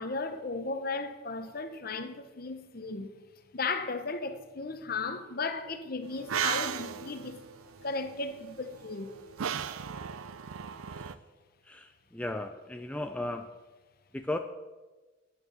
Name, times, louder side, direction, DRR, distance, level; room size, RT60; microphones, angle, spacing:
voice 1, 0.0-3.1 3.5-7.4 7.8-9.1, left 3 dB, 45° left, 0.8 m, -35 dB
sound 1, 6.1-11.2, right 8 dB, 90° right, 0.5 m, -36 dB
voice 2, 11.7-13.5 14.1-14.4, left 1 dB, 5° left, 0.4 m, -35 dB
9.2 x 9.2 x 6.3 m
head